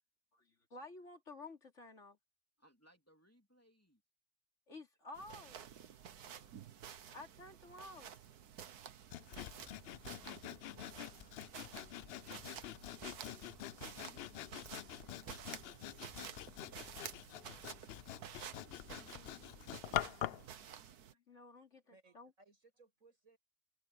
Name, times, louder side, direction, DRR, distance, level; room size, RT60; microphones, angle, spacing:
voice 1, 0.3-2.2 4.7-5.7 7.1-8.2 20.5-22.3, left 2 dB, 50° left, 3.2 m, -53 dB
voice 2, 2.6-4.0 6.2-6.6 18.5-19.7, equal, 10° left, 3.2 m, -69 dB
sound 1, 5.1-21.1, right 9 dB, 85° right, 1.6 m, -52 dB
Sawing, 9.1-20.5, left 12 dB, 85° left, 0.5 m, -45 dB
voice 3, 21.9-23.4, right 3 dB, 60° right, 7.0 m, -66 dB
omnidirectional pair, 1.6 m